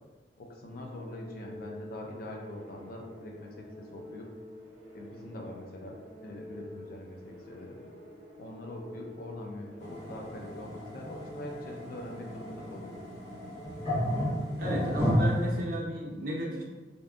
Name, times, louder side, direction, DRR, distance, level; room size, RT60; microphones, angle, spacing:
voice 1, 0.4-4.3 4.9-5.9 6.2-7.8 8.4-12.9, left 1 dB, 55° left, 0 dB, 0.4 m, -43 dB
sound 1, 0.7-14.9, left 1 dB, 15° right, 0.8 m, -48 dB
sound 2, 9.8-15.6, equal, 40° left, 1.2 m, -32 dB
voice 2, 14.6-16.6, right 1 dB, 55° right, -3 dB, 0.6 m, -33 dB
2.6 x 2.2 x 2.4 m, 1.3 s
head